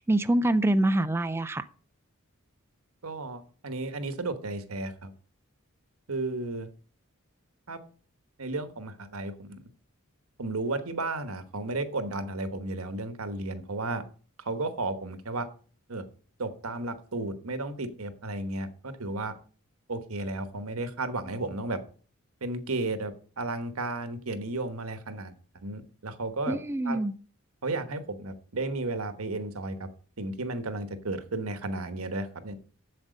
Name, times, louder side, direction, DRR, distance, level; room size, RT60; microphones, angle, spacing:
voice 1, 0.0-1.6 26.5-27.1, right 1 dB, 10° right, 0.3 m, -25 dB
voice 2, 3.0-5.1 6.1-6.7 7.7-7.8 8.4-9.6 10.4-14.0 14.4-15.5 15.9-16.0 16.4-19.3 19.9-21.8 22.4-26.6 26.8-27.0 27.6-29.9 30.2-32.5, right 2 dB, 85° right, 1.2 m, -33 dB
8.0 x 7.5 x 5.1 m
head